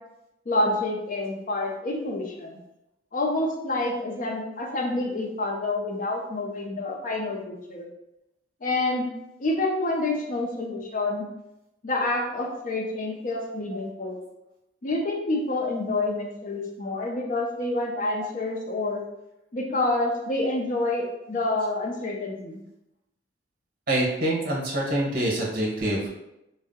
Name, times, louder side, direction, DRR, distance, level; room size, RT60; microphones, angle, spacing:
voice 1, 0.5-2.6 3.1-7.9 8.6-9.1 9.4-11.3 11.8-14.2 14.8-19.0 19.5-22.6, left 2 dB, 45° left, 1 dB, 0.5 m, -28 dB
voice 2, 23.9-26.1, right 1 dB, 55° right, -3 dB, 0.9 m, -25 dB
2.6 x 2.1 x 3.5 m, 0.88 s
head